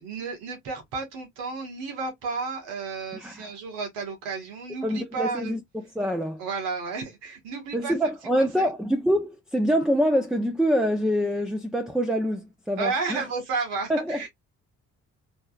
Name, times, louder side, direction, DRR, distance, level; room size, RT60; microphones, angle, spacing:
voice 1, 0.0-5.6 6.4-7.9 8.4-8.7 12.8-14.3, right 4 dB, 80° right, 1.7 m, -32 dB
voice 2, 3.1-3.5 4.8-6.4 7.7-13.3 13.9-14.2, equal, ahead, 0.7 m, -25 dB
4.2 x 3.1 x 2.4 m
hypercardioid pair, 45°, 40 cm